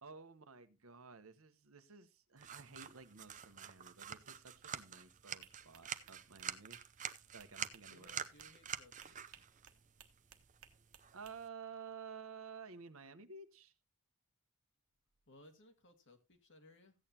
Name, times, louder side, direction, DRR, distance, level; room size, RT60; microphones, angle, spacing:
voice 1, 0.0-8.3 11.1-13.7, right 5 dB, 70° right, 1.0 m, -53 dB
sound 1, 2.4-11.5, right 8 dB, 35° right, 0.6 m, -48 dB
sound 2, 5.4-11.3, right 9 dB, 85° right, 1.3 m, -62 dB
voice 2, 7.9-9.4 15.3-17.0, left 2 dB, 60° left, 1.8 m, -63 dB
15.0 x 8.8 x 2.8 m
head